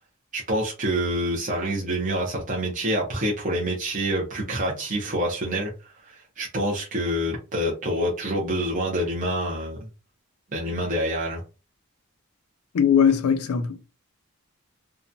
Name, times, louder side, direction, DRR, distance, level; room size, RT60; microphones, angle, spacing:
voice 1, 0.3-9.8 10.5-11.4, right 1 dB, 35° right, 0.6 m, -27 dB
voice 2, 12.7-13.8, left 7 dB, 80° left, 0.4 m, -20 dB
2.8 x 2.2 x 2.5 m
head